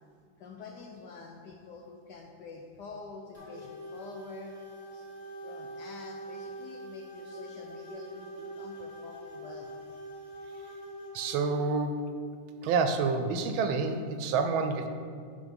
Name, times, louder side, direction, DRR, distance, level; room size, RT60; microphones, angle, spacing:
voice 1, 0.4-4.6 4.9-5.1 5.4-9.7, left 4 dB, 70° left, 0 dB, 1.0 m, -47 dB
sound 1, 3.3-11.7, right 1 dB, 20° left, 2.1 m, -44 dB
voice 2, 11.1-12.0 12.6-14.9, right 4 dB, 75° right, 7 dB, 1.3 m, -28 dB
10.0 x 3.5 x 5.2 m, 2.2 s
omnidirectional pair, 2.4 m